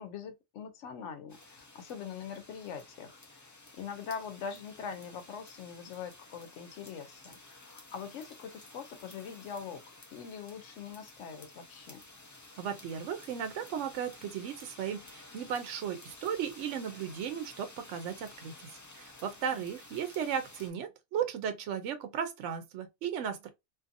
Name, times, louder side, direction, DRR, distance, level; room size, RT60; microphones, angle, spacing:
voice 1, 0.0-12.0 19.5-19.6, left 7 dB, 80° left, 1.0 m, -43 dB
sound 1, 1.3-20.7, left 2 dB, 25° left, 0.4 m, -53 dB
voice 2, 12.6-23.5, right 8 dB, 85° right, 0.9 m, -36 dB
2.6 x 2.5 x 2.5 m
omnidirectional pair, 1.2 m